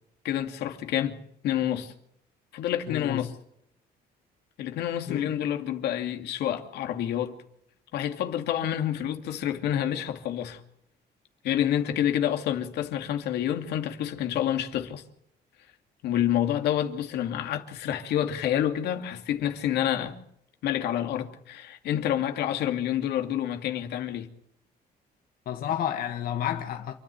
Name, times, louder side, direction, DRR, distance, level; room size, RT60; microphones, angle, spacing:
voice 1, 0.2-1.2 1.4-1.9 2.5-3.3 4.6-7.3 7.9-10.6 11.4-15.0 16.0-20.2 20.6-24.3, left 11 dB, 85° left, 2.6 m, -28 dB
voice 2, 2.9-3.2 5.1-5.3 25.5-26.9, left 10 dB, 60° left, 2.0 m, -30 dB
28.0 x 10.5 x 9.6 m
cardioid pair, 160°, 17 cm